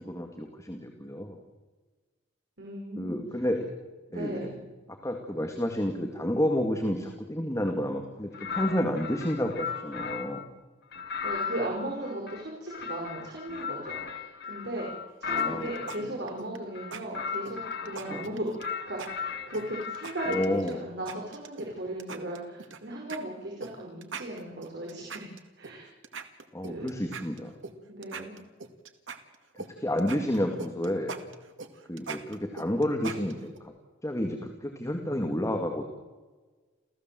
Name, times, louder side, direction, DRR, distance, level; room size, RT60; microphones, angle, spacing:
voice 1, 0.0-1.4 3.0-3.6 4.1-4.5 5.0-10.5 15.3-15.7 16.0-16.1 18.1-18.3 20.3-20.8 26.5-27.5 29.8-31.1 31.9-33.7 34.0-35.8, equal, 15° left, 3 dB, 2.2 m, -30 dB
voice 2, 2.6-3.2 4.1-4.6 11.2-14.9 15.2-18.5 18.9-20.4 20.6-25.3 25.6-25.9 26.6-26.9 27.9-28.4, right 1 dB, 60° right, -2 dB, 5.4 m, -37 dB
sound 1, 8.3-10.5 10.9-16.0 16.7-18.3 18.6-20.6, left 6 dB, 60° left, 2.0 m, -36 dB
sound 2, 15.4-16.0 16.3-16.6 16.9-17.0 17.4-18.7 19.0-19.1 19.5-20.7 21.1-21.7 22.0-22.8 23.1-23.2 23.6-23.7 24.0-25.7 26.0-27.7 28.0-29.7 30.0-33.6, right 5 dB, 80° right, 2.1 m, -40 dB
29.0 x 15.5 x 7.7 m, 1.3 s
head